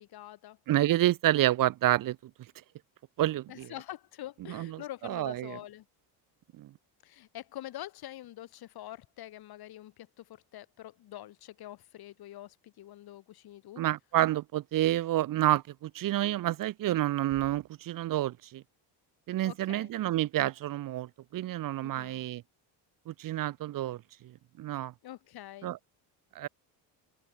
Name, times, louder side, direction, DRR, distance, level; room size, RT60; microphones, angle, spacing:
voice 1, 0.0-0.6 3.5-5.9 7.0-13.8 19.4-19.9 21.8-22.2 25.0-25.7, left 13 dB, 55° left, 3.7 m, -45 dB
voice 2, 0.7-2.2 3.2-3.7 4.5-5.6 6.6-6.7 13.8-18.6 19.3-22.4 23.1-24.0 24.6-24.9 25.6-25.8 26.3-26.5, right 14 dB, 50° right, 0.9 m, -29 dB
open air
cardioid pair, 145°, 44 cm